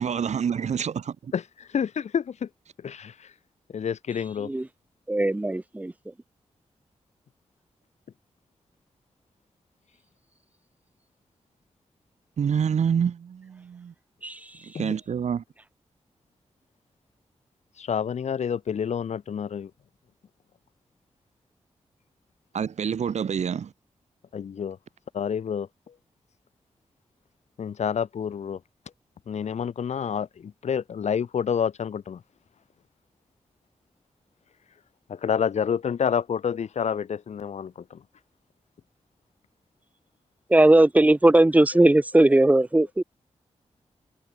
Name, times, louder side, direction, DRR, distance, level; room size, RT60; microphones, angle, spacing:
voice 1, 0.0-1.3 12.4-13.9 14.6-15.4 22.5-23.7, right 7 dB, 90° right, 2.4 m, -27 dB
voice 2, 1.3-2.5 2.8-3.3 3.7-4.5 14.7-14.9 17.8-19.7 24.3-24.8 25.1-25.9 27.6-28.6 29.3-32.2 35.1-38.0, left 7 dB, 85° left, 1.9 m, -28 dB
voice 3, 5.1-5.9 14.2-14.4 40.5-43.0, right 1 dB, 15° right, 1.5 m, -18 dB
wide cardioid pair, 145°, 11 cm